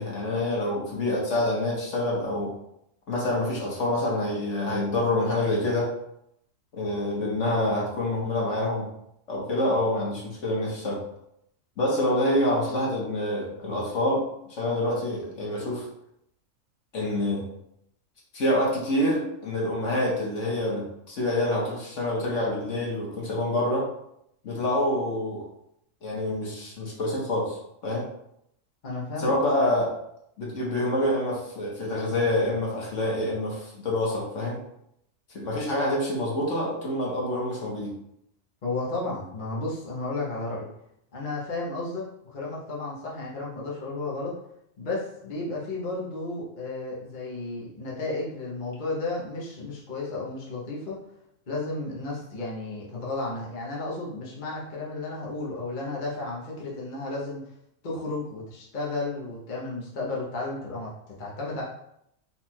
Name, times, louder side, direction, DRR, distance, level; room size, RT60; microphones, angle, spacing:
voice 1, 0.0-2.5 3.1-5.9 6.7-8.9 9.3-11.0 11.8-15.9 16.9-17.4 18.3-23.9 24.4-25.4 26.0-28.0 29.2-29.9 30.4-34.6 35.3-37.9, left 1 dB, 65° left, -4 dB, 1.5 m, -27 dB
voice 2, 28.8-29.5 38.6-40.7 41.1-44.3 44.8-51.0 51.5-57.4 57.8-61.6, left 2 dB, 40° left, -5 dB, 1.0 m, -33 dB
4.3 x 2.5 x 4.3 m, 0.76 s
omnidirectional pair, 1.4 m